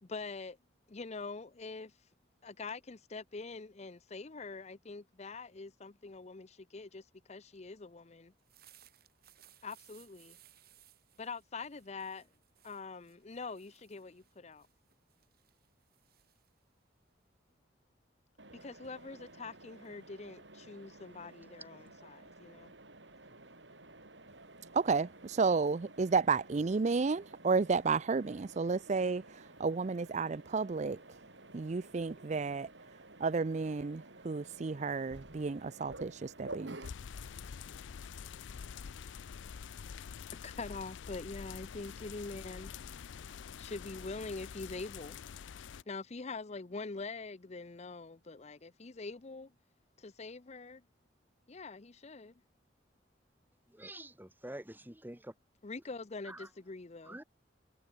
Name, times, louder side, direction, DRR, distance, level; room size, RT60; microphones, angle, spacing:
voice 1, 0.0-0.6 0.9-1.9 2.4-8.3 9.6-10.4 11.2-12.3 12.6-14.7 18.5-22.7 40.4-42.7 43.6-45.2 45.9-49.5 50.0-50.8 51.5-52.3 55.6-57.2, left 3 dB, 35° left, 0.7 m, -44 dB
sound 1, 8.3-17.6, right 12 dB, 55° right, 6.0 m, -64 dB
Mechanisms, 18.4-36.9, right 2 dB, 75° right, 8.0 m, -53 dB
voice 2, 24.7-31.0 31.5-32.7 33.2-36.8, right 4 dB, 40° right, 0.4 m, -32 dB
sound 2, 36.8-45.8, left 7 dB, 85° left, 0.5 m, -46 dB
voice 3, 53.7-55.3 56.3-56.5 57.0-57.2, right 1 dB, 10° right, 1.8 m, -47 dB
head